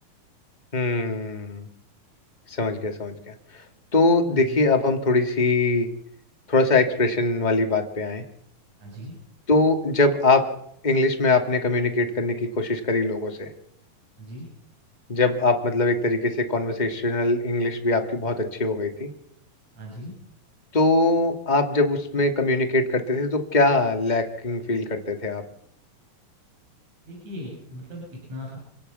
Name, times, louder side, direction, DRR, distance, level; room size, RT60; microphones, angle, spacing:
voice 1, 0.7-1.7 2.5-3.3 3.9-5.9 6.5-8.2 9.5-10.4 10.8-13.5 15.1-19.1 20.7-25.4, left 2 dB, 15° left, 4 dB, 1.8 m, -22 dB
voice 2, 4.3-4.6 8.8-9.2 14.2-14.5 19.8-20.1 27.1-28.6, equal, 45° right, -3 dB, 8.9 m, -38 dB
27.5 x 17.0 x 7.1 m, 0.74 s
omnidirectional pair, 4.2 m